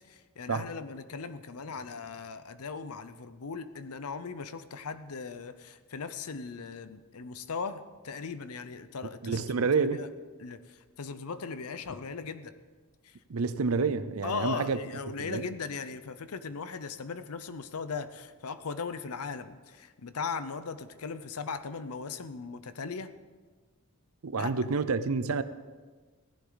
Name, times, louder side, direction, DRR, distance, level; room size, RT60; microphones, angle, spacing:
voice 1, 0.1-10.1 10.4-12.5 13.0-13.2 14.2-23.1 24.3-24.5, left 5 dB, 80° left, 0.7 m, -38 dB
voice 2, 9.2-10.0 13.3-14.8 15.2-15.5 24.2-25.4, right 4 dB, 70° right, 0.6 m, -28 dB
16.0 x 11.5 x 4.0 m
head